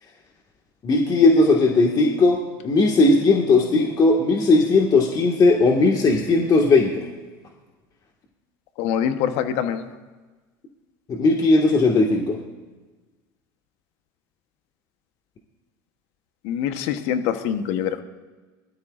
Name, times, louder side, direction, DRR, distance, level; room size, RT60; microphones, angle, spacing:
voice 1, 0.8-7.1 11.1-12.4, left 3 dB, 35° left, 1 dB, 1.7 m, -18 dB
voice 2, 8.8-9.8 16.4-18.0, left 9 dB, 65° left, 9 dB, 1.0 m, -24 dB
20.5 x 13.0 x 2.5 m, 1.3 s
supercardioid pair, 100°, 11 cm